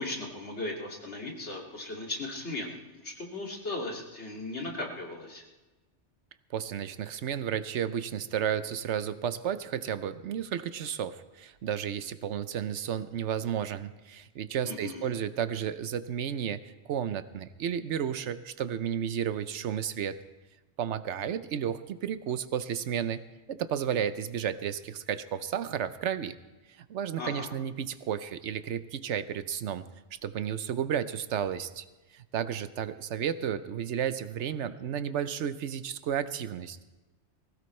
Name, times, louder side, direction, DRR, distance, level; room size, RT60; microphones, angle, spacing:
voice 1, 0.0-5.4 14.6-15.1 27.2-27.5, left 2 dB, 75° left, -1 dB, 2.6 m, -37 dB
voice 2, 6.5-16.6 16.9-20.2 20.8-23.2 23.5-26.4 26.8-29.9 30.1-31.9 32.1-36.8, right 9 dB, 85° right, 12 dB, 1.0 m, -32 dB
20.0 x 16.5 x 3.2 m, 1.1 s
omnidirectional pair, 1.2 m